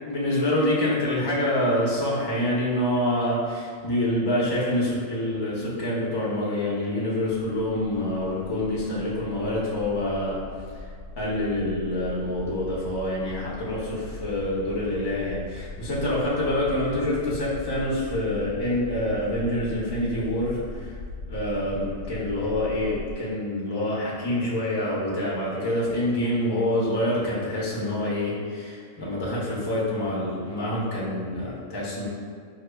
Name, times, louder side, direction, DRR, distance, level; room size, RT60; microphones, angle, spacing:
voice 1, 0.0-10.4 11.2-20.9 21.3-32.1, left 1 dB, 25° left, -6 dB, 0.5 m, -26 dB
sound 1, 6.2-23.1, left 2 dB, 90° left, 1.1 m, -40 dB
4.8 x 2.4 x 2.2 m, 2.1 s
omnidirectional pair, 1.4 m